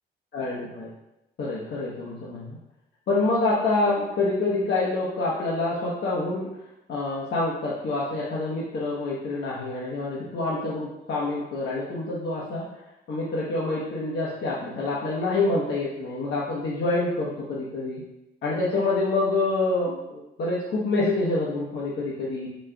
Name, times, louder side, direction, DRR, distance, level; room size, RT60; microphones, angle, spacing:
voice 1, 0.3-0.9 1.4-2.6 3.1-6.5 6.9-12.7 13.1-18.0 18.4-22.5, left 2 dB, 60° left, -6 dB, 1.0 m, -27 dB
4.8 x 4.3 x 2.2 m, 0.89 s
cardioid pair, 90°, 20 cm